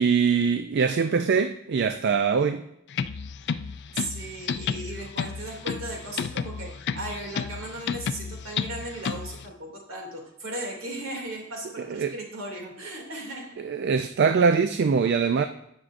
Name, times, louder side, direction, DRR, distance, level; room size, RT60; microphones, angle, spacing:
voice 1, 0.0-2.6 11.9-12.1 13.6-15.4, right 5 dB, 50° right, 0.4 m, -23 dB
sound 1, 2.9-9.5, left 6 dB, 55° left, 0.4 m, -32 dB
voice 2, 3.9-13.6, right 1 dB, 70° right, 2.5 m, -37 dB
17.5 x 6.1 x 2.5 m
head